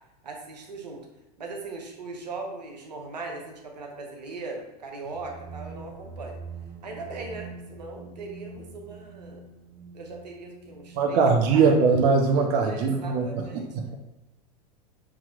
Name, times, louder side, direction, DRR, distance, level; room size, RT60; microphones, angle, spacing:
voice 1, 0.2-1.0 1.4-6.4 6.8-9.4 9.9-11.2 11.5-11.6 12.7-13.9, right 3 dB, 85° right, 2 dB, 0.9 m, -39 dB
sound 1, 5.0-12.7, right 4 dB, 35° right, 1.0 m, -44 dB
voice 2, 11.0-13.9, right 4 dB, 50° right, 2 dB, 0.6 m, -22 dB
5.9 x 2.9 x 2.4 m, 0.97 s
hypercardioid pair, 95°, 21 cm